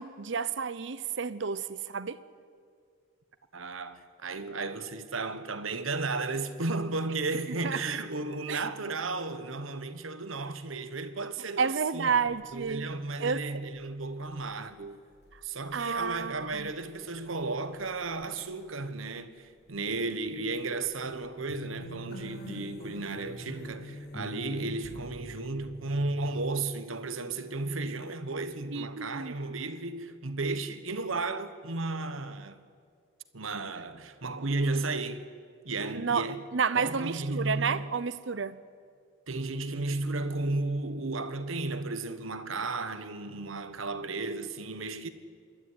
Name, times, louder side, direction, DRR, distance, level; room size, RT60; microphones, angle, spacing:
voice 1, 0.0-2.2 7.6-7.8 8.5-8.6 11.6-12.9 13.2-13.4 15.7-16.7 28.7-29.3 35.9-36.3 36.5-38.6, right 5 dB, 60° right, 0.7 m, -30 dB
voice 2, 3.5-15.0 15.4-32.6 33.3-35.3 35.6-36.5 36.7-37.9 39.3-45.1, right 3 dB, 85° right, 1.3 m, -34 dB
sound 1, 12.3-12.9 13.3-13.4 13.8-14.9 15.2-17.3 17.7-19.2 19.7-19.9 20.3-20.6 20.8-26.4, right 1 dB, 50° left, 1.7 m, -46 dB
sound 2, 24.8-25.8, left 1 dB, ahead, 5.8 m, -50 dB
26.5 x 12.5 x 9.9 m
head